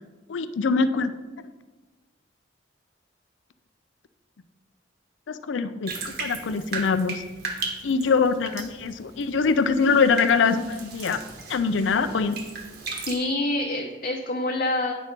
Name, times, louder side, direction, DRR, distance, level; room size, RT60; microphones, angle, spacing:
voice 1, 0.3-1.1 5.3-7.2 7.8-11.2 11.5-12.4, left 5 dB, 80° left, 12 dB, 0.5 m, -23 dB
Bathtub (filling or washing), 5.9-13.1, right 4 dB, 55° right, 1.2 m, -36 dB
voice 2, 13.1-14.9, left 2 dB, 45° left, 0 dB, 0.7 m, -26 dB
9.2 x 5.2 x 4.3 m, 1.3 s
head